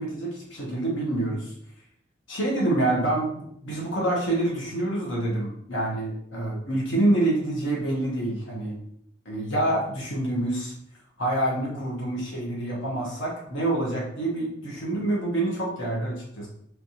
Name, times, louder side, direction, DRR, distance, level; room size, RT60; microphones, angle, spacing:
voice 1, 0.0-1.5 2.3-8.7 9.2-10.7 11.2-16.5, right 1 dB, 90° left, -3 dB, 1.3 m, -27 dB
3.4 x 3.3 x 2.9 m, 0.70 s
head